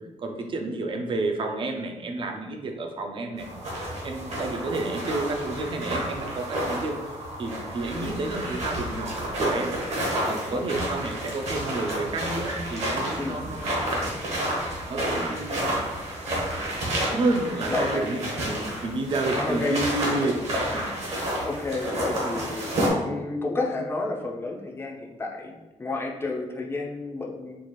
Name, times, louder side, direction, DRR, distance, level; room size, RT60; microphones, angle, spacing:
voice 1, 0.2-3.5 4.0-7.1 7.4-9.8 10.3-15.8 16.9-20.4 20.7-20.9, right 2 dB, 40° right, 3 dB, 0.4 m, -30 dB
sound 1, 3.4-22.9, right 1 dB, 60° right, 1.1 m, -30 dB
voice 2, 8.0-8.3 10.5-10.6 13.2-13.5 17.7-18.1 19.3-19.8 21.4-22.7 23.0-27.6, left 3 dB, 20° left, 0 dB, 0.4 m, -31 dB
4.4 x 2.4 x 2.9 m, 1.1 s
wide cardioid pair, 180°, 13 cm